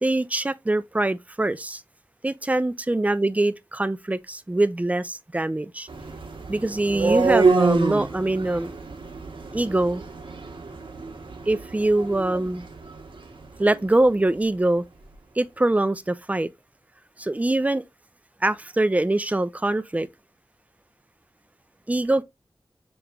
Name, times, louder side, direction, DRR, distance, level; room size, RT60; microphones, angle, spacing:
voice 1, 0.0-1.8 2.2-5.9 6.5-8.7 9.5-10.0 11.5-12.6 13.6-14.8 15.4-16.5 17.2-17.8 18.4-20.1 21.9-22.2, right 2 dB, 15° right, 0.4 m, -23 dB
sound 1, 5.9-13.8, right 4 dB, 90° right, 1.0 m, -27 dB
6.6 x 3.0 x 2.2 m
wide cardioid pair, 60°, 9 cm